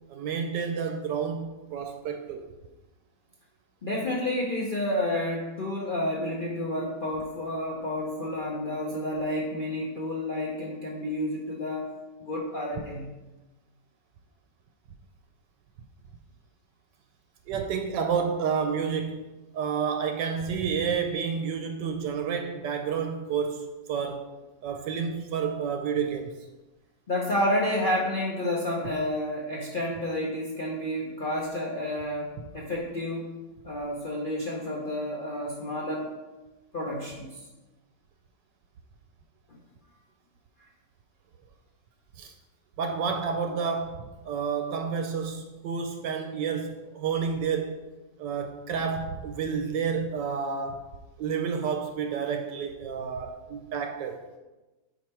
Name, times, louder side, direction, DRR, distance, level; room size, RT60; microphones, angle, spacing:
voice 1, 0.1-2.5 17.5-19.3 19.5-24.3 24.6-26.5 42.2-42.3 42.8-47.7 48.2-50.9 51.2-54.2, right 6 dB, 75° right, 5 dB, 1.2 m, -30 dB
voice 2, 3.8-11.9 12.2-13.1 27.1-33.3 33.6-36.1 36.7-37.3, left 1 dB, 65° left, -4 dB, 0.5 m, -30 dB
5.6 x 5.0 x 4.4 m, 1.1 s
omnidirectional pair, 2.0 m